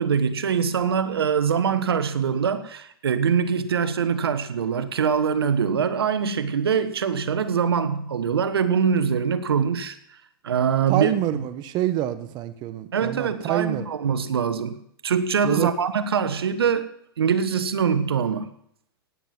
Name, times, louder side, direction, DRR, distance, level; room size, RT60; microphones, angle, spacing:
voice 1, 0.0-10.0 10.4-11.4 12.9-16.9 17.2-18.5, right 7 dB, 85° right, 1.3 m, -23 dB
voice 2, 10.9-13.9 15.4-15.7, right 12 dB, 35° right, 1.1 m, -26 dB
17.0 x 9.5 x 6.0 m
hypercardioid pair, 125°, 12 cm